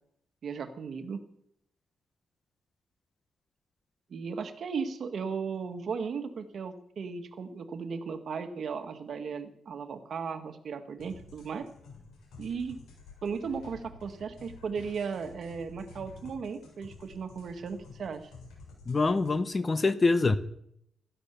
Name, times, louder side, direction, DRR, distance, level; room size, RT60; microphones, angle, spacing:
voice 1, 0.4-1.3 4.1-11.7 12.4-12.8 13.2-18.3, right 5 dB, 50° right, 1.8 m, -36 dB
sound 1, 11.0-19.4, left 4 dB, 90° left, 7.1 m, -51 dB
voice 2, 18.9-20.4, left 3 dB, 25° left, 0.9 m, -25 dB
15.5 x 12.5 x 7.0 m
cardioid pair, 125°, 0 cm